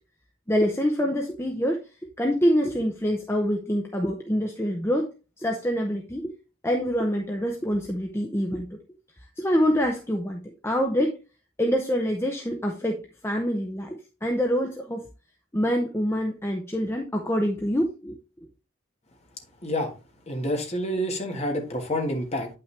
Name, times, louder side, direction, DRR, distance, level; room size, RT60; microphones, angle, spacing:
voice 1, 0.5-1.8 2.2-5.1 5.4-6.3 6.6-8.8 9.4-11.2 11.6-15.1 15.5-18.5, equal, 10° left, 3 dB, 0.7 m, -26 dB
voice 2, 20.3-22.5, equal, 30° left, 2 dB, 1.6 m, -28 dB
9.0 x 5.8 x 3.3 m, 0.31 s
head